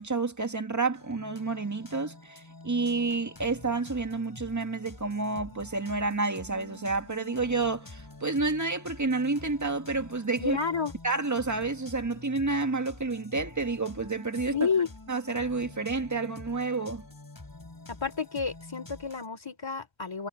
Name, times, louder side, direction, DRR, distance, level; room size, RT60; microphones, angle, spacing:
voice 1, 0.0-10.6 11.0-14.7 15.1-17.0, right 3 dB, 40° right, 2.0 m, -30 dB
sound 1, 0.9-19.3, left 2 dB, 50° left, 7.8 m, -47 dB
voice 2, 10.4-10.9 14.5-14.9 17.9-20.3, left 5 dB, 75° left, 3.4 m, -30 dB
wide cardioid pair, 60°, 45 cm